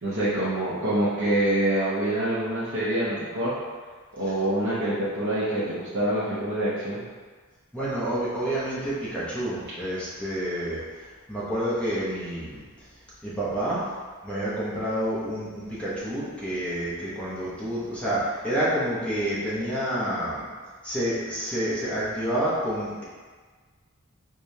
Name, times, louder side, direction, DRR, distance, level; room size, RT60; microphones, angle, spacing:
voice 1, 0.0-3.5 4.2-7.0, right 1 dB, 55° right, -11 dB, 0.8 m, -26 dB
voice 2, 7.7-10.8 11.3-12.6 13.2-13.8 14.2-20.4 20.8-23.0, right 1 dB, 5° left, -10 dB, 0.7 m, -28 dB
4.8 x 2.3 x 2.7 m, 1.5 s
head